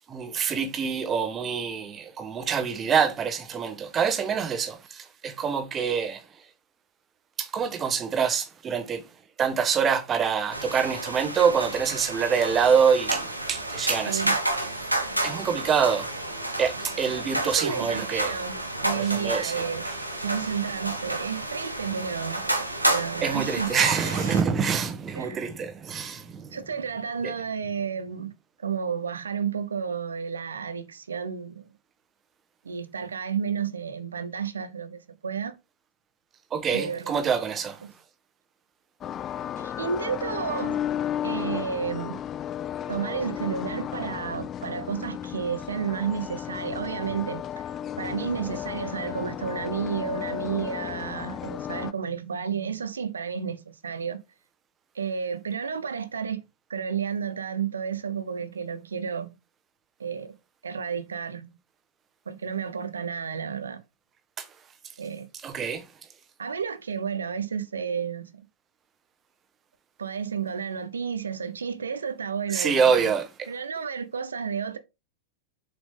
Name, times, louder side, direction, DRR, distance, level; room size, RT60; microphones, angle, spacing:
voice 1, 0.1-6.2 7.4-9.0 9.4-14.4 15.2-16.1 16.6-18.3 18.9-19.5 23.2-26.6 27.2-27.3 36.5-37.8 64.4-64.5 65.4-65.8 72.5-73.5, right 6 dB, 25° right, 1.5 m, -26 dB
sound 1, 10.5-24.4, right 1 dB, 85° right, 1.4 m, -30 dB
voice 2, 14.0-14.4 17.4-19.8 20.2-22.4 22.9-23.7 25.1-25.4 26.5-28.3 28.6-31.7 32.6-35.5 36.7-37.2 37.8-37.9 39.6-40.8 41.2-42.2 42.9-47.5 48.0-54.2 54.9-56.4 56.7-59.3 60.0-60.3 60.6-61.5 62.3-63.8 65.0-65.3 66.4-68.4 70.0-73.1 73.5-74.8, right 6 dB, 70° right, 0.9 m, -31 dB
sound 2, 39.0-51.9, left 10 dB, 30° left, 0.3 m, -34 dB
7.5 x 5.0 x 3.5 m
figure-of-eight pair, 90°, 0 cm